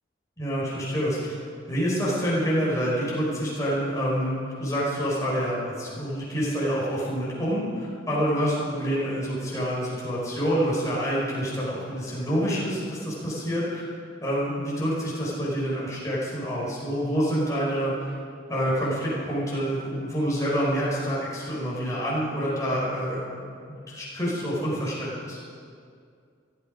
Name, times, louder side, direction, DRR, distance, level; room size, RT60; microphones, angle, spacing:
voice 1, 0.4-1.4 1.7-4.3 4.6-13.8 14.2-18.2 18.5-23.4 23.7-25.4, equal, 15° left, -7 dB, 4.7 m, -27 dB
22.0 x 12.5 x 5.2 m, 2.3 s
head